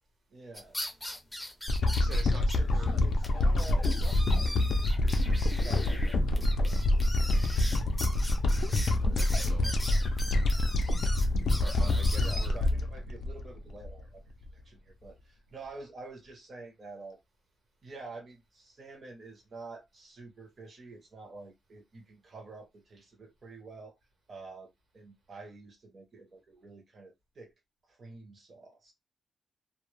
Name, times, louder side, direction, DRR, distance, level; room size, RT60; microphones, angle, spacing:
voice 1, 0.3-0.7 2.6-2.7 3.0-5.2 5.6-6.2 12.1-14.2 14.5-17.2 17.8-24.0 24.3-27.5 27.9-28.9, right 3 dB, 45° right, 0.6 m, -48 dB
sound 1, 0.5-2.6 2.9-3.0 3.2-3.3 3.6-12.7, left 1 dB, 5° left, 0.5 m, -41 dB
sound 2, 1.7-14.0 14.5-14.6, left 1 dB, 60° left, 0.3 m, -26 dB
voice 2, 1.9-3.1 8.9-10.1 11.6-12.6, right 3 dB, 80° right, 1.0 m, -47 dB
2.1 x 2.0 x 3.0 m
wide cardioid pair, 165°, 0 cm